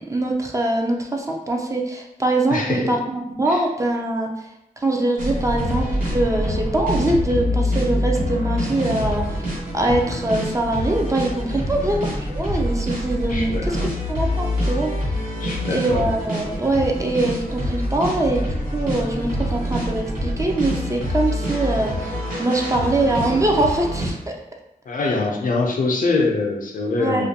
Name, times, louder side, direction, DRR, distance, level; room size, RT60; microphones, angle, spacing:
voice 1, 0.1-4.3 4.8-13.8 14.1-14.9 15.7-18.4 18.7-24.4 27.0-27.3, right 2 dB, 20° right, 0 dB, 0.4 m, -23 dB
voice 2, 2.5-3.0 3.5-3.6 11.7-12.0 13.3-13.9 15.4-16.1 24.9-27.3, left 3 dB, 65° left, 1 dB, 0.4 m, -24 dB
sound 1, 5.2-24.1, equal, 65° right, 1.2 m, -25 dB
2.4 x 2.1 x 2.7 m, 0.83 s
wide cardioid pair, 100°, 15 cm